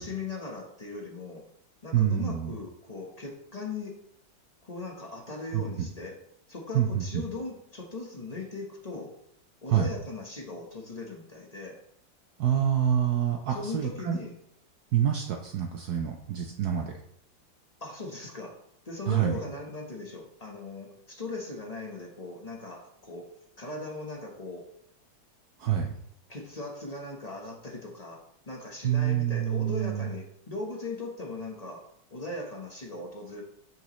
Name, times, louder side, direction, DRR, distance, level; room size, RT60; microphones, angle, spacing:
voice 1, 0.0-1.4 1.8-4.0 4.6-6.2 6.5-9.1 9.6-11.8 13.5-14.3 17.8-18.6 18.8-24.7 26.3-31.8 32.1-33.4, left 3 dB, 25° left, 0 dB, 0.9 m, -39 dB
voice 2, 1.9-2.5 5.5-5.9 6.7-7.2 9.7-9.9 12.4-14.2 14.9-16.9 19.1-19.4 25.6-25.9 28.8-30.1, right 10 dB, 65° right, 3 dB, 1.1 m, -27 dB
7.3 x 6.6 x 3.1 m, 0.72 s
omnidirectional pair, 2.1 m